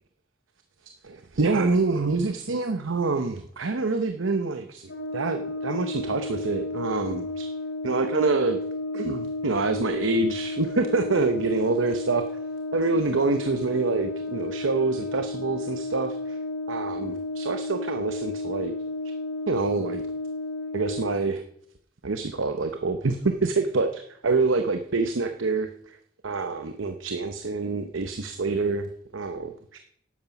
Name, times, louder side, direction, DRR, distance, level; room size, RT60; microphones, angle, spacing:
voice 1, 1.0-7.5 7.8-8.6 8.9-12.2 12.7-16.4 16.7-18.7 19.5-20.0 20.7-21.4 22.0-25.7 26.2-29.8, right 3 dB, 90° right, 7 dB, 0.8 m, -26 dB
Brass instrument, 4.9-21.3, left 2 dB, 70° left, 1.2 m, -32 dB
11.5 x 9.3 x 5.9 m, 0.68 s
head